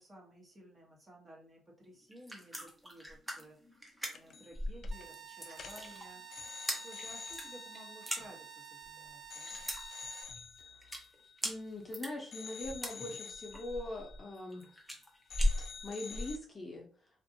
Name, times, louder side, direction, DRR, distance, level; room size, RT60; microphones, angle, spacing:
voice 1, 0.0-6.3 6.5-9.7, equal, 30° right, -2 dB, 1.1 m, -55 dB
sound 1, 2.0-16.4, left 1 dB, 5° right, 0.8 m, -39 dB
sound 2, 4.1-4.6 4.8-5.1 5.5-8.9 9.3-11.9 12.3-15.0 15.3-16.4, left 6 dB, 60° left, 0.3 m, -49 dB
sound 3, 4.9-10.2, right 8 dB, 55° right, 0.4 m, -51 dB
voice 2, 11.4-14.7 15.8-16.9, left 2 dB, 30° left, 0 dB, 0.7 m, -42 dB
2.5 x 2.5 x 2.7 m, 0.43 s
cardioid pair, 90°, 0 cm